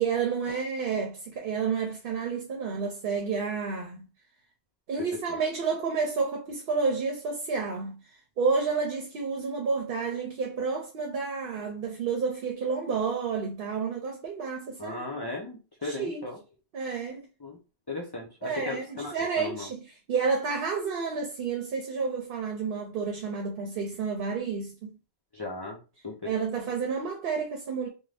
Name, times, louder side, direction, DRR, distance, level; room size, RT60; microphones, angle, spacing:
voice 1, 0.0-4.1 4.9-8.0 8.4-15.0 15.8-16.2 16.7-17.3 18.4-24.9 26.2-27.9, right 5 dB, 65° right, 0.8 m, -30 dB
voice 2, 14.8-16.4 17.4-17.6 17.9-19.7 25.3-26.3, left 2 dB, 30° left, 0.5 m, -37 dB
2.6 x 2.2 x 3.2 m
omnidirectional pair, 1.0 m